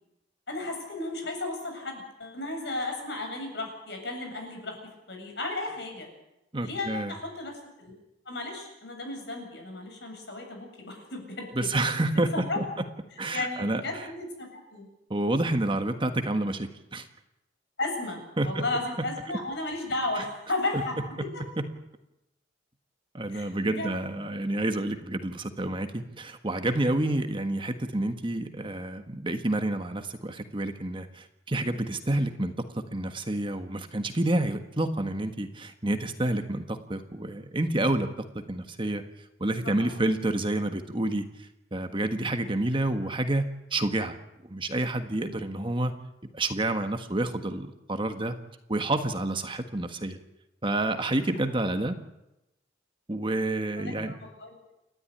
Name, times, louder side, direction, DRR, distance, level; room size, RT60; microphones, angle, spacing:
voice 1, 0.5-4.8 5.1-6.1 6.6-7.9 8.3-11.9 12.3-12.6 13.3-14.9 17.8-21.4 23.3-23.9 39.8-40.0 53.8-54.7, left 2 dB, 65° left, 3 dB, 7.5 m, -34 dB
voice 2, 6.5-7.1 11.5-12.6 13.2-13.8 15.1-17.1 18.4-18.6 20.2-20.3 20.7-20.8 23.1-38.1 38.5-39.0 39.4-44.2 44.5-45.9 46.3-48.3 48.7-50.2 50.6-51.9 53.1-54.1, right 1 dB, 25° right, 7 dB, 1.5 m, -29 dB
29.0 x 12.5 x 10.0 m, 0.91 s
head